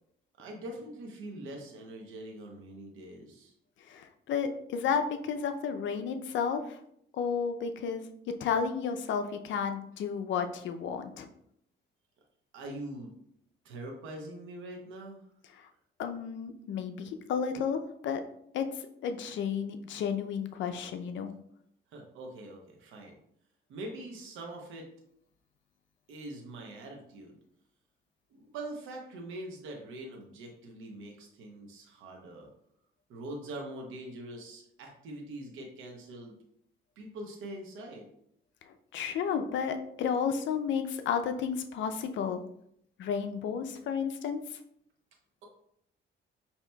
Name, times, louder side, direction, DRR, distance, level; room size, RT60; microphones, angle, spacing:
voice 1, 0.4-3.5 12.5-13.1 13.6-15.2 21.9-23.2 23.7-24.9 26.1-27.4 28.3-32.5 33.1-36.3 37.0-38.1, right 1 dB, 90° right, 1 dB, 0.8 m, -43 dB
voice 2, 3.9-6.8 7.1-11.3 15.6-15.7 16.0-18.2 18.5-18.7 19.0-21.4 38.9-42.4 43.0-44.4, left 6 dB, 70° left, 8 dB, 0.5 m, -32 dB
5.3 x 2.8 x 2.2 m, 0.70 s
cardioid pair, 90°, 20 cm